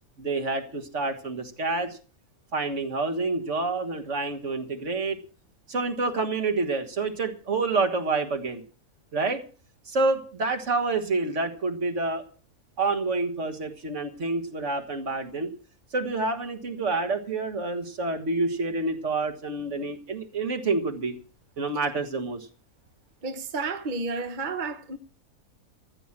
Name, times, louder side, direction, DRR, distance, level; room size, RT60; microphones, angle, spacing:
voice 1, 0.2-2.0 2.5-5.2 5.7-8.6 9.1-9.4 9.9-12.2 12.8-15.5 15.9-21.2 21.6-22.5, right 3 dB, 55° right, 2.0 m, -28 dB
voice 2, 23.2-25.0, right 3 dB, 40° right, 1.0 m, -31 dB
14.5 x 8.3 x 7.3 m
omnidirectional pair, 1.5 m